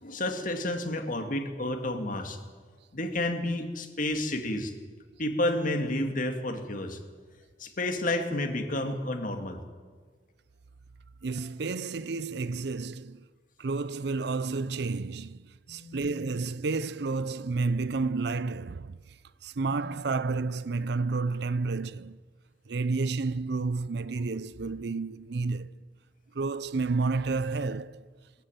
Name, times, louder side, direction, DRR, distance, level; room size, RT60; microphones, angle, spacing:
voice 1, 0.0-2.4 2.9-4.7 5.2-7.0 7.6-9.6 15.7-16.2 19.7-19.9, left 1 dB, 45° left, 2.2 m, -31 dB
voice 2, 11.2-13.2 13.6-22.2 22.7-25.7 26.3-28.1, right 3 dB, 60° right, 0.5 m, -31 dB
21.5 x 14.5 x 9.2 m
head